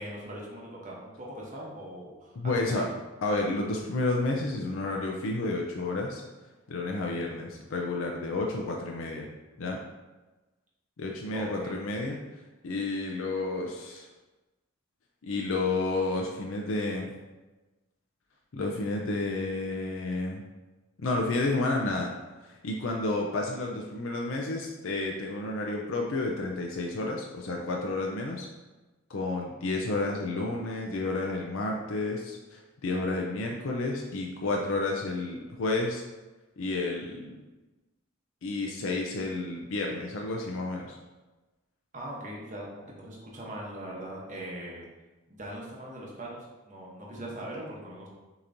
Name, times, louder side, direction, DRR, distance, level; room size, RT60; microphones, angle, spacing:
voice 1, 0.0-2.4 2.7-2.9 11.3-11.8 41.9-44.8 45.3-48.1, right 1 dB, 35° right, -4 dB, 0.9 m, -40 dB
voice 2, 2.4-2.9 3.2-6.2 6.7-9.3 9.6-9.8 11.0-12.2 12.6-14.1 15.2-17.1 18.5-20.4 21.0-22.1 22.4-28.5 29.1-36.0 36.6-37.4 38.4-41.0, left 2 dB, 75° left, 0 dB, 0.5 m, -31 dB
6.6 x 2.9 x 2.6 m, 1.1 s
head